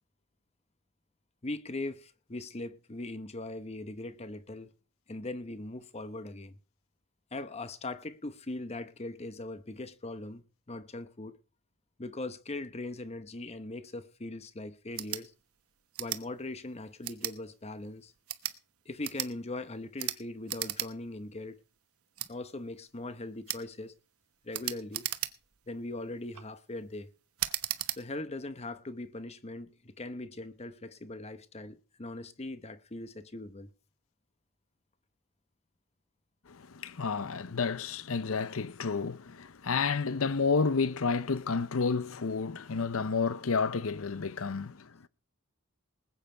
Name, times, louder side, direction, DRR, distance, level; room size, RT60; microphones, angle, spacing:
voice 1, 1.4-4.7 5.1-6.6 7.3-11.4 12.0-15.3 16.0-18.1 18.8-21.6 22.3-23.9 24.4-25.0 25.7-27.1 27.9-33.7, left 2 dB, 30° left, 0.9 m, -40 dB
sound 1, 14.9-15.2 15.9-16.2 17.0-17.4 18.2-18.6 19.0-19.3 20.0-20.2 20.5-20.9 21.2-21.3 22.2-22.3 23.5-23.6 24.5-25.6 26.1-26.4 27.4-28.0, right 14 dB, 90° right, 1.0 m, -35 dB
voice 2, 36.5-45.1, left 4 dB, 70° left, 0.7 m, -30 dB
20.0 x 8.9 x 4.5 m
head